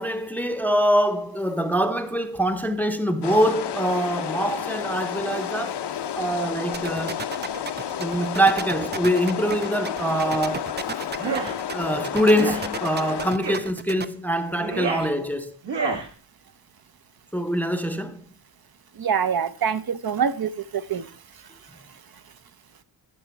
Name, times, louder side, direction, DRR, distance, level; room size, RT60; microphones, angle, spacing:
voice 1, 0.0-5.8 6.1-7.2 8.0-10.7 11.7-15.5 17.3-18.2, equal, 5° left, 0.7 m, -24 dB
sound 1, 3.2-13.3, left 9 dB, 65° left, 0.7 m, -31 dB
sound 2, 6.7-14.0, right 5 dB, 25° right, 0.4 m, -33 dB
sound 3, 11.1-11.5 12.3-12.6 13.4-13.7 14.5-15.1 15.6-16.1, right 5 dB, 70° right, 1.8 m, -28 dB
voice 2, 19.0-21.0, right 7 dB, 55° right, 0.8 m, -25 dB
13.0 x 6.6 x 4.6 m
wide cardioid pair, 115°, 44 cm